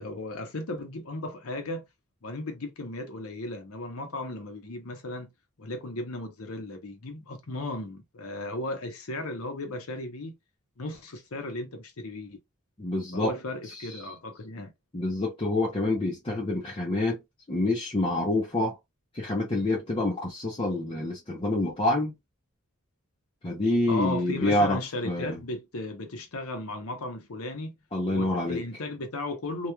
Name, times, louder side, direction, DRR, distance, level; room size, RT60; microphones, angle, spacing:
voice 1, 0.0-1.8 2.2-5.3 5.6-10.3 10.8-12.4 13.1-14.7 23.9-27.7 28.1-29.7, left 2 dB, 75° left, 0.8 m, -35 dB
voice 2, 12.8-13.4 13.7-14.1 14.9-17.2 17.5-18.7 19.1-22.1 23.4-25.4 27.9-28.6, left 2 dB, 25° left, 0.6 m, -27 dB
3.0 x 2.3 x 2.2 m
head